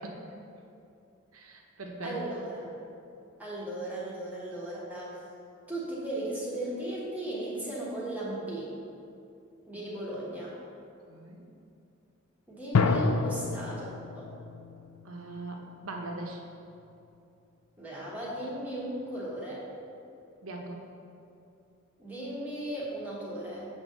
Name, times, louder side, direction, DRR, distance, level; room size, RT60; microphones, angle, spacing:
voice 1, 1.3-2.2 9.7-9.9 11.1-11.4 15.0-16.4 20.4-20.8, right 2 dB, 75° right, 1 dB, 1.0 m, -40 dB
voice 2, 2.0-2.7 3.4-5.2 5.7-8.7 9.7-10.5 12.5-13.8 14.1-14.3 17.8-19.6 22.0-23.6, right 1 dB, 10° right, -8 dB, 1.6 m, -36 dB
sound 1, 12.7-16.2, left 4 dB, 80° left, 0.5 m, -29 dB
7.7 x 3.6 x 6.6 m, 2.6 s
head